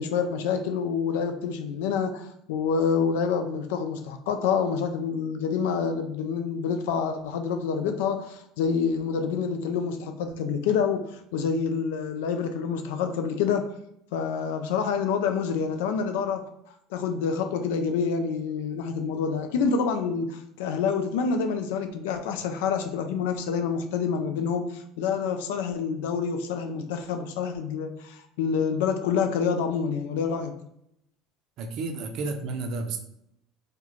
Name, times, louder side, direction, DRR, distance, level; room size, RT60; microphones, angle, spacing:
voice 1, 0.0-13.7 14.1-16.5 16.9-30.5, left 6 dB, 85° left, 7 dB, 0.3 m, -27 dB
voice 2, 31.6-33.0, right 3 dB, 60° right, 6 dB, 0.4 m, -31 dB
2.4 x 2.1 x 3.0 m, 0.77 s
supercardioid pair, 105°, 0 cm